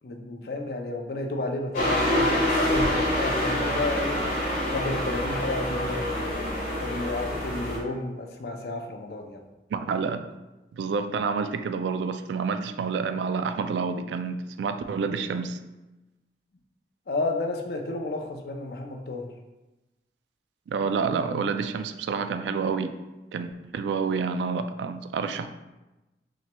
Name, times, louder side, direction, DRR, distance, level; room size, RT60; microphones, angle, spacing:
voice 1, 0.0-4.2 4.7-9.4 17.1-19.3, left 2 dB, 60° left, 4 dB, 0.5 m, -32 dB
sound 1, 1.7-7.8, left 1 dB, 45° left, 1.3 m, -26 dB
voice 2, 9.7-10.2 10.7-15.6 20.7-22.9 23.3-25.5, right 5 dB, 80° right, 9 dB, 0.3 m, -28 dB
5.9 x 3.0 x 2.2 m, 1.0 s
head